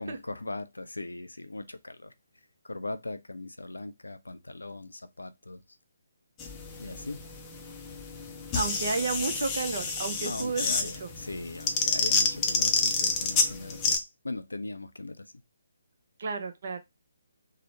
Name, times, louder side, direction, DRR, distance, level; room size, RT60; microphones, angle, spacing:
voice 1, 0.0-2.1 2.6-5.6 6.8-7.2 10.2-14.0 14.2-15.3, left 2 dB, 75° left, 0.4 m, -39 dB
sound 1, 6.4-14.0, left 4 dB, 15° left, 0.5 m, -29 dB
voice 2, 8.5-11.1 16.2-16.8, right 4 dB, 45° right, 0.5 m, -32 dB
2.8 x 2.0 x 2.6 m
figure-of-eight pair, 140°, 0 cm